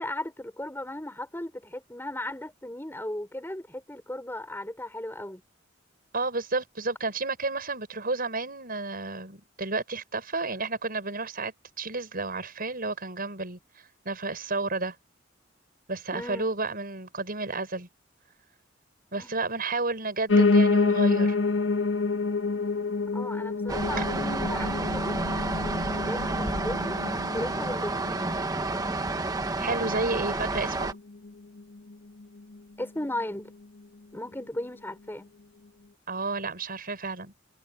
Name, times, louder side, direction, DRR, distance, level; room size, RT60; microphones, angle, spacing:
voice 1, 0.0-5.4 16.1-16.5 19.1-19.3 23.1-25.2 25.5-27.0 27.3-28.0 30.1-30.2 32.8-33.5 34.1-35.3, left 1 dB, 10° left, 6.0 m, -36 dB
voice 2, 6.1-13.6 14.0-14.9 15.9-17.9 19.1-21.4 27.3-27.6 29.6-31.0 36.1-37.3, right 3 dB, 50° right, 6.5 m, -31 dB
Piano, 20.3-29.4 29.8-31.0 31.2-31.3 31.6-31.7 31.9-32.0 32.6-32.7, left 3 dB, 80° left, 1.4 m, -27 dB
sound 1, 23.7-30.9, right 2 dB, 20° right, 1.4 m, -30 dB
head